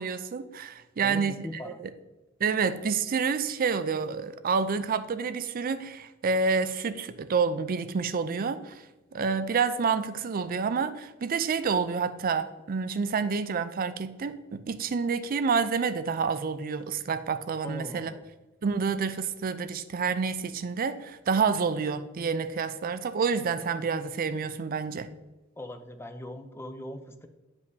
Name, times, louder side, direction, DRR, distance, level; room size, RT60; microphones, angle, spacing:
voice 1, 0.0-1.4 1.8-1.9 2.4-8.8 9.1-18.1 18.6-25.1, right 5 dB, 45° right, 0.4 m, -28 dB
voice 2, 1.0-1.8 17.6-18.3 25.6-27.3, left 1 dB, 10° left, 0.5 m, -40 dB
9.6 x 5.3 x 2.7 m
head